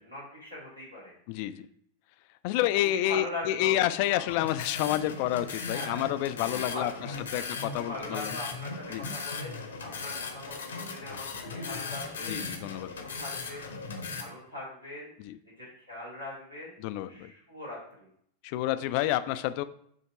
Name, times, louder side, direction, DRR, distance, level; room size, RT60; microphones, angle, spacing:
voice 1, 0.0-1.1 2.9-3.8 4.1-4.2 5.7-6.1 6.4-12.3 12.7-12.9 13.1-13.7 14.1-15.1 15.6-16.7 17.1-18.1, left 1 dB, 85° right, -6 dB, 2.0 m, -41 dB
voice 2, 1.3-1.7 2.4-8.4 8.9-9.1 12.2-13.1 15.2-15.4 16.8-17.3 18.4-19.6, left 14 dB, 45° left, 12 dB, 0.3 m, -29 dB
sound 1, 4.3-14.2, left 4 dB, 70° left, 0.8 m, -38 dB
7.3 x 2.9 x 4.5 m, 0.69 s
figure-of-eight pair, 90°, 0 cm